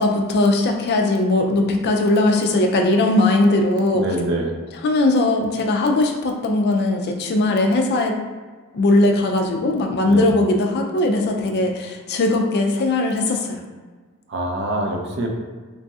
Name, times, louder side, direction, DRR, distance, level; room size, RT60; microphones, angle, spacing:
voice 1, 0.0-4.0 4.8-8.2 8.7-13.6, left 2 dB, 50° left, 2 dB, 0.3 m, -19 dB
voice 2, 3.9-4.6 10.0-10.3 14.3-15.3, right 1 dB, 55° right, 1 dB, 0.5 m, -24 dB
3.0 x 2.6 x 2.3 m, 1.4 s
head